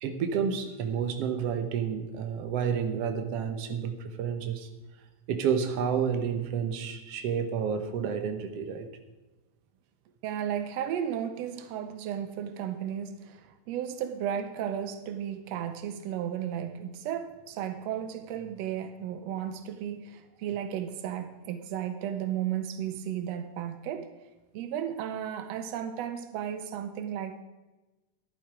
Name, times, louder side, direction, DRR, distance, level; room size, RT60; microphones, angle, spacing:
voice 1, 0.0-4.7 5.3-8.9, right 7 dB, 65° right, 1.7 m, -30 dB
voice 2, 10.2-24.1 24.5-27.4, right 9 dB, 85° right, 1.5 m, -34 dB
13.5 x 11.0 x 4.9 m
omnidirectional pair, 3.9 m